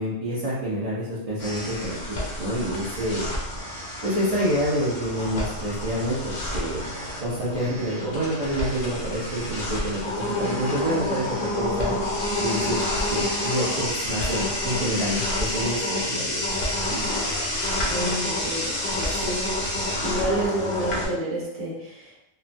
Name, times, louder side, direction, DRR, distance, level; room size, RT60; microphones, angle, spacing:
voice 1, 0.0-3.3 4.0-6.9 7.2-11.9 12.4-12.8 13.1-16.4, equal, 50° right, -10 dB, 0.4 m, -27 dB
sound 1, 1.4-21.1, left 1 dB, 50° left, 0.6 m, -28 dB
voice 2, 17.9-19.5 20.0-22.2, right 1 dB, 10° right, -7 dB, 0.8 m, -29 dB
2.9 x 2.1 x 2.6 m, 0.84 s
omnidirectional pair, 1.5 m